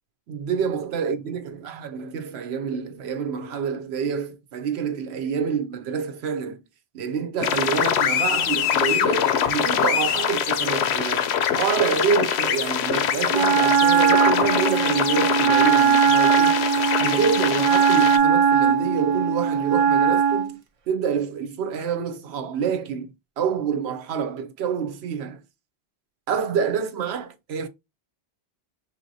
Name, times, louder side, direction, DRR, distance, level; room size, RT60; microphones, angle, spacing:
voice 1, 0.3-6.6 6.9-16.7 17.0-20.6 20.9-23.1 23.4-25.4 26.3-27.7, right 6 dB, 75° right, 0.9 m, -27 dB
sound 1, 7.4-18.2, left 9 dB, 80° left, 0.8 m, -24 dB
Wind instrument woodwind instrument, 13.3-20.5, right 7 dB, 50° right, 0.4 m, -19 dB
5.0 x 2.8 x 2.6 m
omnidirectional pair, 1.1 m